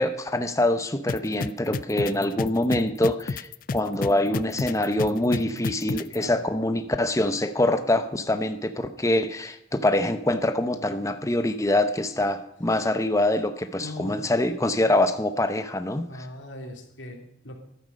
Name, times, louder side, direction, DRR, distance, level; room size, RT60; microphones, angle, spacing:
voice 1, 0.0-16.1, left 1 dB, 15° left, 9 dB, 0.7 m, -24 dB
sound 1, 1.1-6.2, left 4 dB, 45° left, 0.4 m, -30 dB
voice 2, 5.4-6.5 13.8-14.3 16.1-17.6, left 1 dB, 70° left, 3 dB, 3.0 m, -40 dB
13.5 x 11.0 x 5.3 m, 0.77 s
head